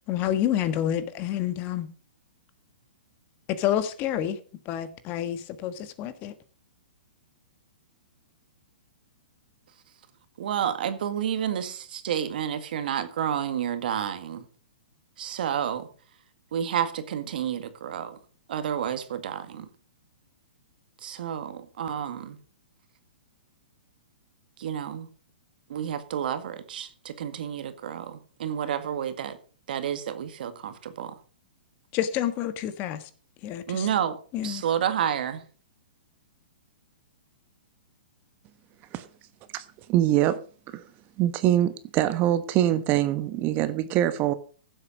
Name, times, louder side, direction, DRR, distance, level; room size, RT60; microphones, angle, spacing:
voice 1, 0.1-1.9 3.5-4.4 4.6-6.3 31.9-33.1 33.4-33.9 34.3-34.6, left 11 dB, 35° left, 1.4 m, -28 dB
voice 2, 10.4-14.4 15.2-15.9 16.5-18.2 18.5-19.7 21.0-22.4 24.6-25.1 25.7-29.4 29.7-31.2 33.7-35.4, right 9 dB, 65° right, 1.8 m, -30 dB
voice 3, 39.5-40.4 40.7-40.8 41.2-44.3, right 13 dB, 30° right, 1.1 m, -24 dB
15.5 x 7.9 x 5.1 m
hypercardioid pair, 130°, 5 cm